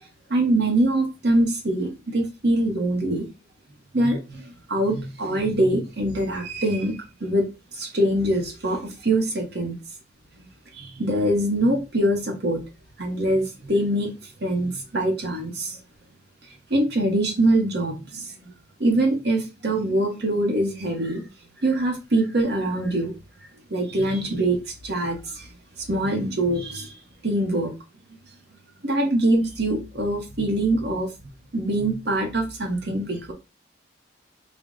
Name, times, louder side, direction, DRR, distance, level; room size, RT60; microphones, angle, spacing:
voice 1, 0.3-3.3 3.9-7.5 7.7-9.7 10.7-12.6 13.0-14.1 14.4-15.8 16.7-18.5 18.8-21.3 21.6-23.1 23.7-24.6 24.8-25.5 25.9-26.9 27.2-27.7 28.8-31.1 31.5-33.3, right 1 dB, 55° right, 3 dB, 0.9 m, -23 dB
3.4 x 2.1 x 3.8 m, 0.27 s
head